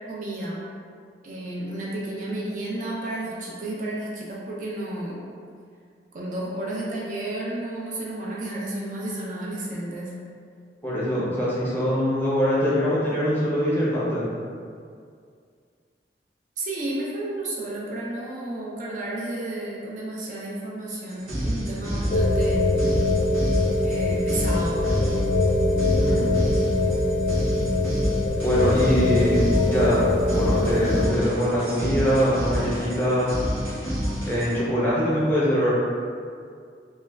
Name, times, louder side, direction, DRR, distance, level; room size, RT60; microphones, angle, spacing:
voice 1, 0.1-0.6 1.2-5.2 6.1-10.2 16.6-22.7 23.8-25.1, right 1 dB, 45° right, -5 dB, 0.4 m, -32 dB
voice 2, 10.8-14.3 26.0-26.3 28.4-33.3 34.3-35.7, equal, 10° left, -8 dB, 0.6 m, -23 dB
sound 1, 21.1-34.6, equal, 65° right, 0.9 m, -29 dB
sound 2, 22.1-31.1, left 2 dB, 60° left, 0.3 m, -23 dB
3.0 x 2.2 x 2.2 m, 2.2 s
head